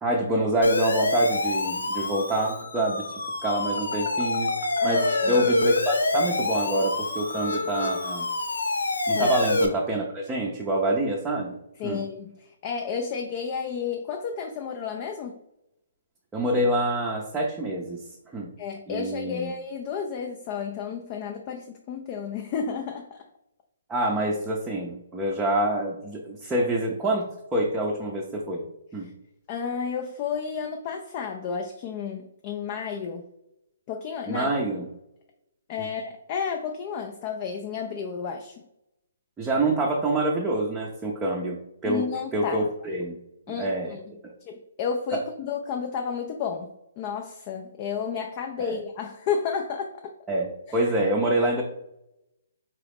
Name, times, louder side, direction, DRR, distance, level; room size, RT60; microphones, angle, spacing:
voice 1, 0.0-3.1 3.4-4.5 4.8-8.3 9.1-11.6 11.8-12.0 16.3-18.0 18.3-18.5 18.9-19.5 23.9-28.6 28.9-29.1 34.3-34.9 35.8-35.9 39.4-42.0 42.3-43.2 43.6-43.9 44.2-44.3 45.1-45.2 48.6-48.7 50.3-51.6, right 1 dB, 10° right, -3 dB, 0.6 m, -26 dB
Siren, 0.6-9.7, left 2 dB, 80° left, 0.6 m, -26 dB
voice 2, 4.8-5.5 9.1-9.3 11.8-15.4 18.6-23.2 29.5-33.2 33.9-34.5 35.7-38.6 41.8-42.6 43.5-44.0 44.5-50.1 50.7-50.8, left 6 dB, 35° left, 3 dB, 0.4 m, -32 dB
3.8 x 3.0 x 3.4 m, 0.84 s
figure-of-eight pair, 135°, 0 cm